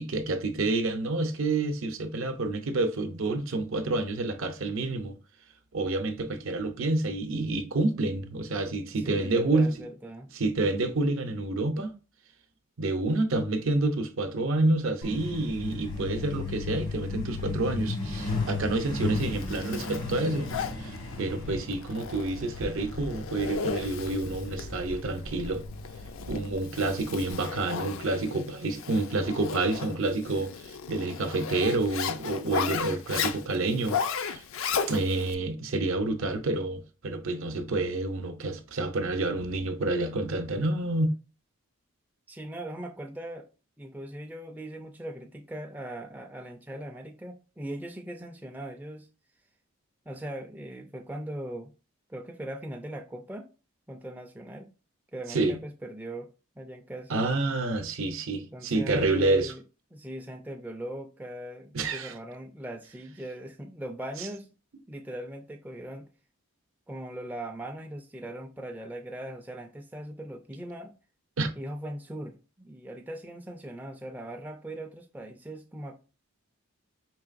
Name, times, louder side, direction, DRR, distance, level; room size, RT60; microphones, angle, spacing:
voice 1, 0.0-5.2 5.7-9.7 10.3-11.9 12.8-20.5 20.8-25.6 26.3-34.4 34.9-41.1 55.3-55.6 57.1-59.5 61.7-62.1 64.2-64.3 71.4-71.5, right 2 dB, 65° right, 0.6 m, -28 dB
voice 2, 9.0-10.3 42.3-43.5 43.8-49.1 50.1-51.7 52.1-53.5 53.9-54.7 55.1-56.3 56.6-57.1 58.5-59.6 59.9-64.5 64.9-66.1 66.9-70.9 71.6-75.9, right 1 dB, 10° right, 0.3 m, -40 dB
Truck, 15.0-27.3, left 3 dB, 80° left, 1.1 m, -36 dB
Zipper (clothing), 19.2-35.3, left 6 dB, 65° left, 0.4 m, -35 dB
4.6 x 3.2 x 2.4 m
head